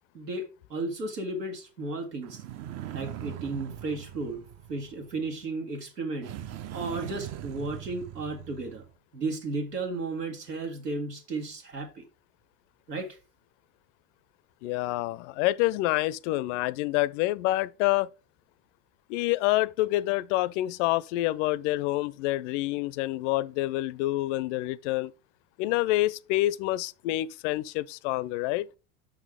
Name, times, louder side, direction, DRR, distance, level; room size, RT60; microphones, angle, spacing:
voice 1, 0.1-2.4 2.9-4.4 4.7-6.3 6.7-8.8 9.1-12.1 12.9-13.2, right 3 dB, 90° right, 2.0 m, -34 dB
sound 1, 2.2-5.3 6.2-8.9, right 11 dB, 35° right, 0.6 m, -41 dB
voice 2, 14.6-18.1 19.1-25.1 25.6-28.7, left 17 dB, 50° left, 0.5 m, -27 dB
6.3 x 5.9 x 3.5 m
hypercardioid pair, 90°, 47 cm